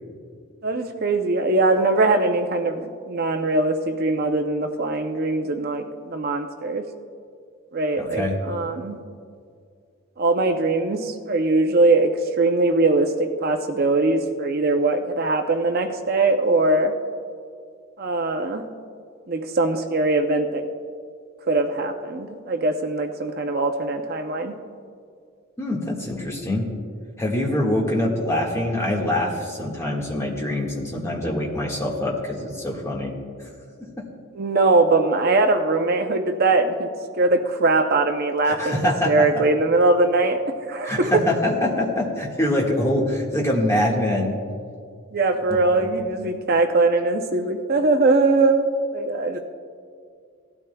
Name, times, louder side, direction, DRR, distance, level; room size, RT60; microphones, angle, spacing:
voice 1, 0.6-6.9 7.7-9.0 10.2-12.1 12.4-16.9 18.0-18.6 19.3-20.7 21.5-24.6 34.4-38.8 39.1-41.1 45.1-49.4, right 2 dB, 45° right, 6 dB, 0.6 m, -21 dB
voice 2, 7.9-8.4 25.6-26.6 27.2-33.1 33.4-33.5 38.4-39.3 40.8-44.3 45.8-45.9, left 1 dB, 15° left, -3 dB, 1.7 m, -24 dB
18.0 x 12.5 x 2.3 m, 2.2 s
head